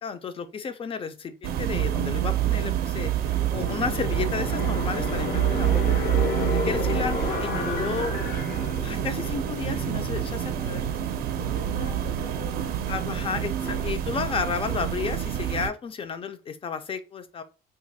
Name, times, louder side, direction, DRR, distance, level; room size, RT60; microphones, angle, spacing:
voice 1, 0.0-6.1 6.7-8.2 8.8-10.9 12.9-17.4, left 6 dB, 30° left, 0.5 m, -32 dB
sound 1, 1.4-15.7, right 11 dB, 65° right, 0.5 m, -27 dB
sound 2, 3.2-13.9, left 5 dB, 60° left, 0.9 m, -34 dB
voice 2, 11.4-13.6, left 5 dB, 80° left, 1.4 m, -46 dB
2.6 x 2.4 x 4.0 m
cardioid pair, 110°, 17 cm